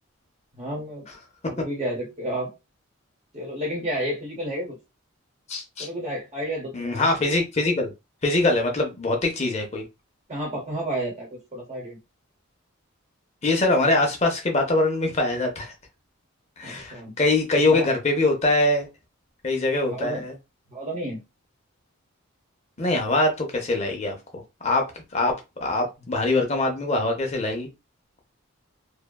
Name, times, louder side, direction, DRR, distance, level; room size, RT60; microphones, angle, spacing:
voice 1, 0.5-1.0 1.5-2.5 3.3-4.7 5.8-7.1 10.3-12.0 16.6-17.1 17.6-17.9 19.9-20.2 20.7-21.2, right 1 dB, 30° right, -2 dB, 1.0 m, -31 dB
voice 2, 5.5-5.9 6.7-7.9 8.2-9.9 13.4-15.7 16.6-18.9 19.4-20.3 22.8-24.2 24.6-25.4 25.6-27.7, left 2 dB, 30° left, 3 dB, 0.5 m, -23 dB
2.6 x 2.2 x 2.2 m, 0.25 s
head